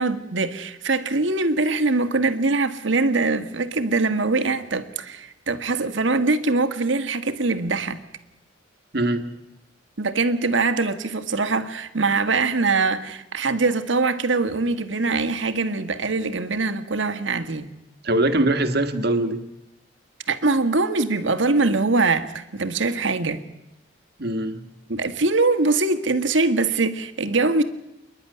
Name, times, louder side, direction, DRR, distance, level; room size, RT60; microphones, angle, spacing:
voice 1, 0.0-8.0 10.0-17.7 20.3-23.4 24.9-27.6, right 3 dB, 75° right, 1.5 m, -22 dB
voice 2, 8.9-9.3 18.0-19.4 24.2-24.6, right 1 dB, 55° right, 1.7 m, -22 dB
27.5 x 11.0 x 9.7 m
head